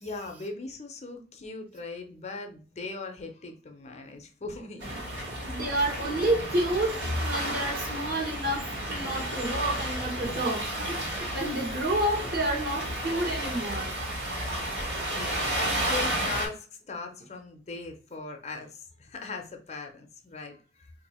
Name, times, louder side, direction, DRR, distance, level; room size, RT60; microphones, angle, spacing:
voice 1, 0.0-5.1 14.4-20.9, left 3 dB, 40° left, 0.6 m, -40 dB
sound 1, 4.8-16.5, right 1 dB, 75° right, 1.6 m, -32 dB
voice 2, 5.4-13.9, right 1 dB, 55° right, 1.1 m, -30 dB
2.7 x 2.4 x 4.2 m
head